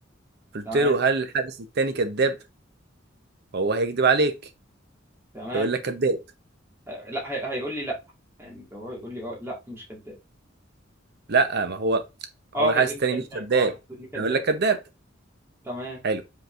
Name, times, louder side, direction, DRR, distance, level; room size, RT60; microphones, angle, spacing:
voice 1, 0.5-2.4 3.5-4.4 5.5-6.2 11.3-12.1 12.6-13.7 14.1-14.8 16.0-16.2, right 4 dB, 55° right, 0.7 m, -23 dB
voice 2, 5.3-5.7 6.9-8.0 8.4-10.2 12.5-14.4 15.6-16.0, right 1 dB, 15° right, 1.8 m, -32 dB
5.3 x 3.9 x 2.5 m
head